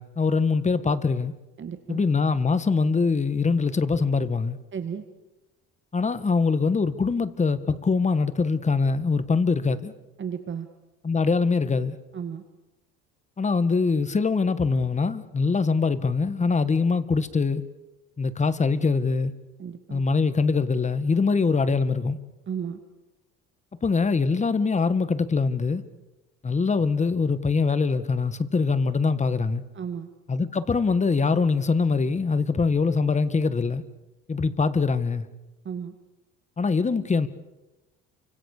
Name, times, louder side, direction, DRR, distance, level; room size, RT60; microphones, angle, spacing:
voice 1, 0.0-1.3 1.9-4.6 5.9-9.9 11.0-12.0 13.4-17.6 18.2-19.3 19.9-22.2 23.8-25.8 26.4-29.6 30.3-33.8 34.3-35.3 36.6-37.3, left 4 dB, 20° left, 1.8 m, -23 dB
voice 2, 1.6-2.0 4.7-5.0 10.2-10.7 12.1-12.4 19.6-20.1 22.5-22.8 29.7-30.1 35.6-35.9, right 7 dB, 40° right, 2.1 m, -33 dB
28.5 x 25.5 x 6.8 m
cardioid pair, 110°, 31 cm